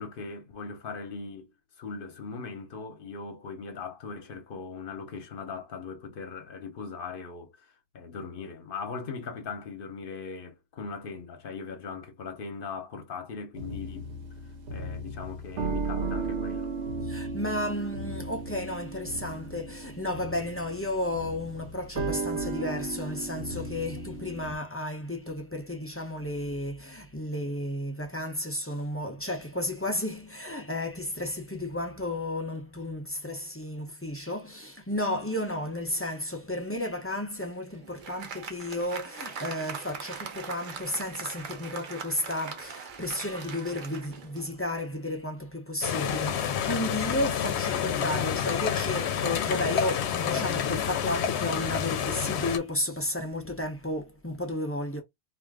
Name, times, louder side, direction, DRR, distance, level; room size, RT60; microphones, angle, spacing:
voice 1, 0.0-1.5 1.8-7.7 7.9-14.1 14.7-16.7, left 5 dB, 55° left, 1.0 m, -39 dB
sound 1, 13.6-24.6, right 3 dB, 85° right, 1.0 m, -35 dB
voice 2, 17.1-55.0, left 1 dB, 20° left, 0.4 m, -33 dB
Applause, 37.4-45.0, right 6 dB, 55° right, 0.7 m, -41 dB
sound 2, 45.8-52.6, left 8 dB, 85° left, 0.9 m, -29 dB
2.5 x 2.4 x 3.4 m
omnidirectional pair, 1.1 m